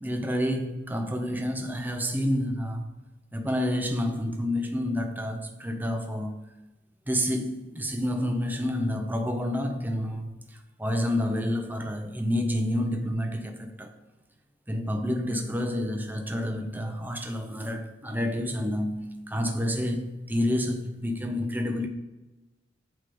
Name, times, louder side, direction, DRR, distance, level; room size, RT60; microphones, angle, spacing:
voice 1, 0.0-2.9 3.3-6.3 7.1-10.3 10.8-13.9 14.7-21.9, left 1 dB, 10° right, 0.7 m, -29 dB
8.2 x 3.6 x 5.2 m
head